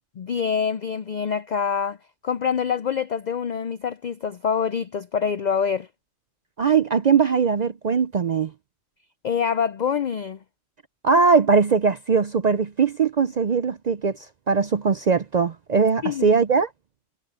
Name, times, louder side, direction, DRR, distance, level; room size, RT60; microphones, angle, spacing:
voice 1, 0.2-2.0 2.2-5.9 9.2-10.4 16.0-16.3, left 7 dB, 65° left, 0.4 m, -25 dB
voice 2, 6.6-8.5 11.0-16.7, right 5 dB, 55° right, 0.5 m, -20 dB
omnidirectional pair, 1.3 m